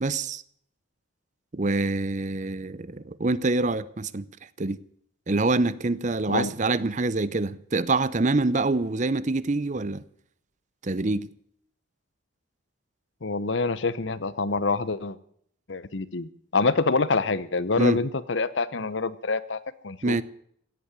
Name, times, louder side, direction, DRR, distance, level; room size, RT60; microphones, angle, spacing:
voice 1, 0.0-0.4 1.5-4.3 4.6-4.8 5.3-10.0 10.8-11.3 17.8-18.0 20.0-20.2, right 3 dB, 40° right, 0.7 m, -25 dB
voice 2, 13.2-15.2 15.7-20.2, left 3 dB, 65° left, 0.9 m, -26 dB
16.5 x 8.7 x 9.6 m
head